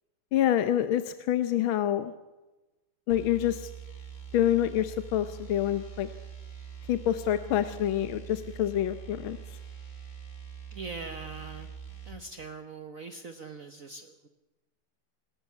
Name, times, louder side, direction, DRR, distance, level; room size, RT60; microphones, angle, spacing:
voice 1, 0.3-2.1 3.1-3.7 4.3-6.1 6.9-9.4, left 11 dB, 80° left, 11 dB, 1.7 m, -27 dB
sound 1, 3.1-12.2, right 7 dB, 45° left, 4.0 m, -44 dB
voice 2, 10.7-11.7 12.1-14.3, right 4 dB, 50° right, 8 dB, 1.3 m, -42 dB
27.0 x 12.0 x 8.3 m, 1.1 s
omnidirectional pair, 2.2 m